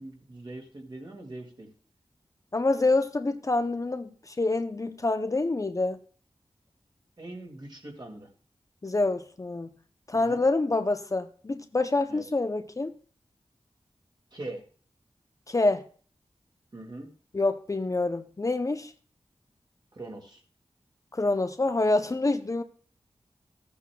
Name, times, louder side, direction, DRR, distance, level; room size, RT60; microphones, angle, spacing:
voice 1, 0.0-1.7 7.2-8.3 10.1-10.4 12.1-12.2 14.3-14.6 16.7-17.1 19.9-20.4, right 2 dB, 45° right, 2.1 m, -41 dB
voice 2, 2.5-6.0 8.8-9.7 10.1-12.9 15.5-15.8 17.3-18.9 21.1-22.6, left 2 dB, 30° left, 0.5 m, -26 dB
14.5 x 8.4 x 2.2 m
wide cardioid pair, 85°, 10 cm